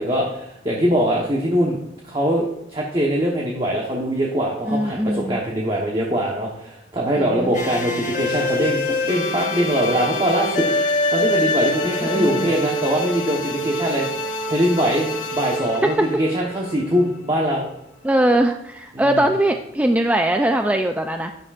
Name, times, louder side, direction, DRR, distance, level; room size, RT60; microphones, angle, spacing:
voice 1, 0.0-1.8 2.0-2.5 2.7-8.8 9.0-10.6 11.1-14.1 14.5-17.7 18.9-19.3, equal, 30° right, -2 dB, 1.1 m, -22 dB
voice 2, 4.7-5.4 7.2-7.5 12.1-12.5 15.8-15.9 18.0-21.3, right 1 dB, 10° right, 5 dB, 0.3 m, -20 dB
sound 1, 7.5-17.4, left 1 dB, 45° left, 1.3 m, -25 dB
10.5 x 9.8 x 2.5 m, 0.85 s
head